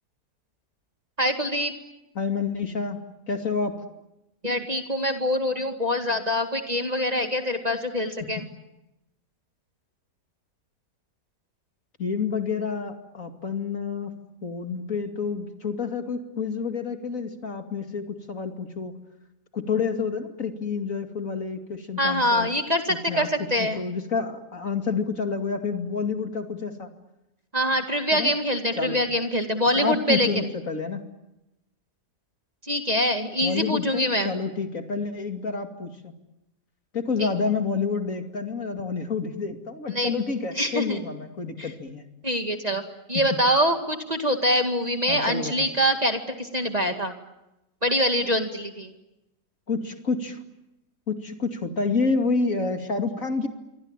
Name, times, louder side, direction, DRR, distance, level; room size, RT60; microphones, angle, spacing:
voice 1, 1.2-1.7 4.4-8.4 22.0-23.8 27.5-30.5 32.6-34.3 37.2-37.3 39.9-40.1 40.5-41.0 41.6-41.7 42.2-42.8 43.1-47.1 47.8-48.9, equal, 25° right, 5 dB, 2.2 m, -24 dB
voice 2, 2.1-3.0 3.3-3.7 12.0-14.1 14.4-19.0 19.5-22.5 22.9-23.3 23.6-26.9 28.1-28.3 28.8-29.0 29.7-31.0 33.4-36.1 36.9-42.0 43.1-43.4 45.1-45.7 49.7-50.4 51.1-53.5, left 4 dB, 55° left, 5 dB, 2.9 m, -29 dB
26.5 x 25.0 x 9.0 m, 0.91 s
omnidirectional pair, 1.7 m